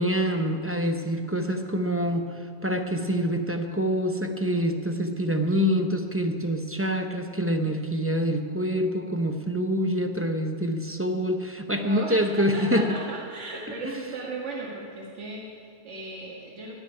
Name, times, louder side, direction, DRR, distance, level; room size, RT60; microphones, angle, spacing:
voice 1, 0.0-12.9 13.8-13.9, equal, 15° right, 5 dB, 0.7 m, -26 dB
voice 2, 11.8-16.8, right 2 dB, 85° right, -3 dB, 2.0 m, -36 dB
16.0 x 6.1 x 9.9 m, 2.2 s
omnidirectional pair, 1.2 m